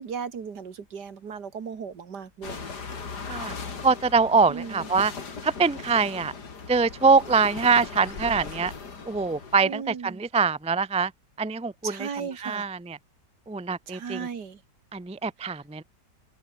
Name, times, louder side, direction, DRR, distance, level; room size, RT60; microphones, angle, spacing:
voice 1, 0.0-2.7 4.5-4.9 9.6-10.2 11.8-12.7 13.9-14.6, right 6 dB, 70° right, 2.5 m, -36 dB
sound 1, 2.4-9.6, left 5 dB, 70° left, 3.2 m, -38 dB
voice 2, 3.8-5.1 5.4-6.3 6.7-8.7 9.1-11.1 11.4-12.1 12.4-13.0 13.5-14.3 14.9-15.8, right 4 dB, 10° right, 0.3 m, -24 dB
open air
omnidirectional pair, 1.9 m